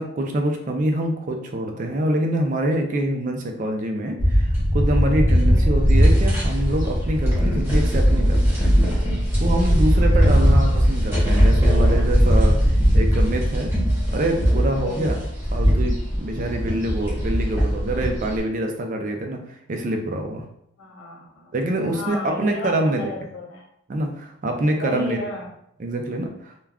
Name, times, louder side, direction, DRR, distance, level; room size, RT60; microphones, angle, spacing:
voice 1, 0.0-8.6 9.4-13.7 14.1-20.5 21.5-23.1 23.9-25.2 25.8-26.5, right 1 dB, 40° right, 3 dB, 0.3 m, -25 dB
sound 1, 4.2-18.4, equal, 10° right, 0.9 m, -19 dB
voice 2, 5.5-5.9 10.3-10.8 14.8-15.2 20.8-21.5 21.9-23.6 24.8-25.5, left 1 dB, 75° left, -2 dB, 0.7 m, -34 dB
2.3 x 2.2 x 3.4 m, 0.74 s
head